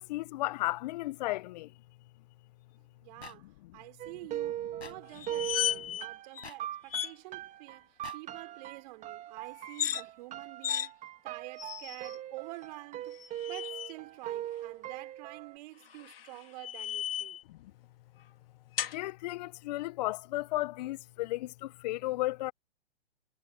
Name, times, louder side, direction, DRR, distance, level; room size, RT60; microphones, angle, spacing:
voice 1, 0.0-1.8 3.4-3.7 5.9-6.0 17.5-17.7 18.9-22.5, left 18 dB, 40° left, 1.3 m, -34 dB
voice 2, 3.0-3.5 3.7-10.9 11.2-13.2 13.5-17.4, right 21 dB, 40° right, 5.2 m, -48 dB
sound 1, 3.2-3.4 4.8-4.9 6.4-6.6 8.0-8.2, left 5 dB, 80° left, 6.1 m, -45 dB
sound 2, 4.0-15.6, right 13 dB, 20° right, 2.6 m, -40 dB
sound 3, 5.1-6.1 6.3-6.5 6.9-7.2 9.6-10.0 10.6-10.9 11.6-12.2 13.1-13.9 15.8-17.4 18.8-19.0, left 11 dB, 60° left, 2.7 m, -35 dB
hypercardioid pair, 125°, 33 cm